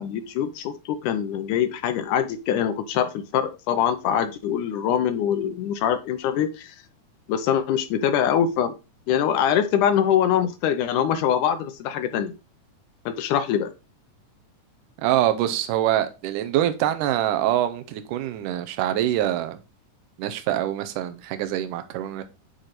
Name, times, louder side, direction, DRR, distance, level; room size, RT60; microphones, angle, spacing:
voice 1, 0.0-6.8 7.3-8.7 9.1-12.3 13.1-13.7, left 9 dB, 80° left, 2.1 m, -23 dB
voice 2, 15.0-19.6 20.2-22.2, right 12 dB, 80° right, 2.2 m, -24 dB
8.8 x 3.2 x 4.1 m
omnidirectional pair, 3.8 m